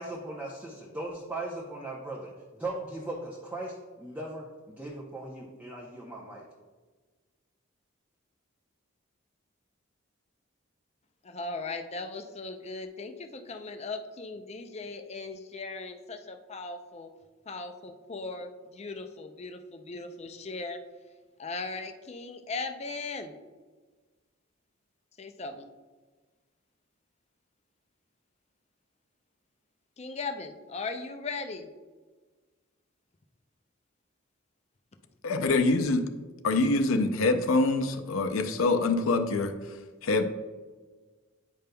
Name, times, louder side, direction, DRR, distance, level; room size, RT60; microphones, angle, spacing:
voice 1, 0.0-6.5, right 2 dB, 5° right, -4 dB, 0.7 m, -38 dB
voice 2, 11.2-17.1 17.5-20.8 21.4-23.3 25.2-25.7 30.0-31.7, left 3 dB, 30° left, 6 dB, 0.4 m, -38 dB
voice 3, 35.2-36.1 36.4-39.5 40.0-40.2, left 3 dB, 80° left, 7 dB, 0.5 m, -25 dB
9.1 x 5.1 x 2.2 m, 1.4 s
head